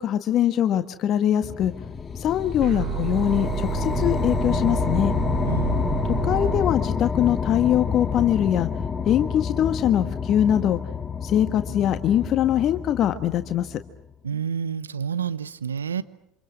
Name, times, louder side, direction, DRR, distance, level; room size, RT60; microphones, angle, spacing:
voice 1, 0.0-1.7 2.2-5.1 6.2-8.7 9.0-10.8 11.2-13.8, left 10 dB, 50° left, 9 dB, 1.5 m, -22 dB
sound 1, 1.4-13.9, left 6 dB, 30° left, 1.8 m, -28 dB
sound 2, 2.6-6.6, right 17 dB, 50° right, 3.3 m, -30 dB
voice 2, 5.5-5.8 14.2-16.0, right 7 dB, 90° right, 15 dB, 0.9 m, -29 dB
28.0 x 27.0 x 6.3 m, 0.76 s
hypercardioid pair, 70°, 0 cm